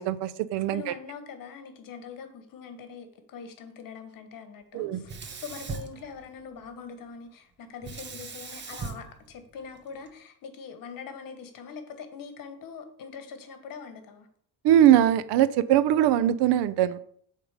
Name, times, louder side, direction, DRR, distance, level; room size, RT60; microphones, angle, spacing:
voice 1, 0.0-0.9 4.7-5.0 14.6-17.0, right 11 dB, 80° right, 16 dB, 0.6 m, -21 dB
voice 2, 0.7-14.3, left 6 dB, 50° left, 7 dB, 1.3 m, -43 dB
Sink (filling or washing), 5.0-6.7 7.8-10.1, right 5 dB, 25° right, 0.7 m, -40 dB
7.9 x 3.7 x 5.0 m, 0.62 s
cardioid pair, 135°, 41 cm